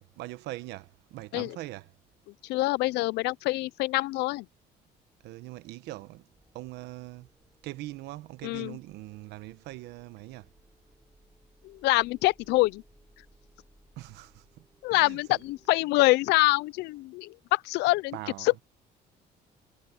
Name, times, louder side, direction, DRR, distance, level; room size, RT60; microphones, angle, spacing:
voice 1, 0.0-1.9 5.2-6.3 6.5-7.3 7.6-10.5 14.0-15.4 18.1-18.5, right 17 dB, 85° right, 1.1 m, -42 dB
voice 2, 2.4-4.5 8.4-8.8 11.6-12.8 14.8-18.6, left 20 dB, 85° left, 0.5 m, -25 dB
sound 1, 6.3-15.8, equal, 5° right, 7.6 m, -63 dB
cardioid pair, 110°, 17 cm